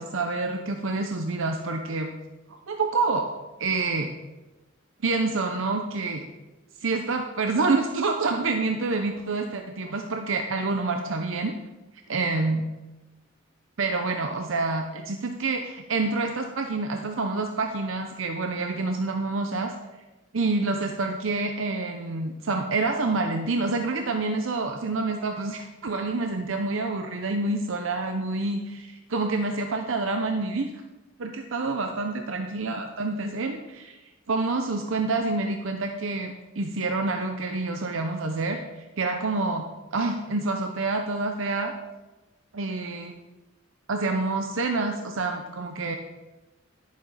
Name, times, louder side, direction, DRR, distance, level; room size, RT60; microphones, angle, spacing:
voice 1, 0.0-2.1 2.5-3.3 3.6-4.1 5.0-6.2 6.8-11.5 12.1-12.7 13.8-19.7 20.3-30.7 31.2-34.0 34.3-39.6 39.9-41.7 42.5-43.1 43.9-45.9, right 3 dB, 70° right, 4 dB, 0.7 m, -27 dB
11.0 x 7.3 x 4.1 m, 1.1 s
head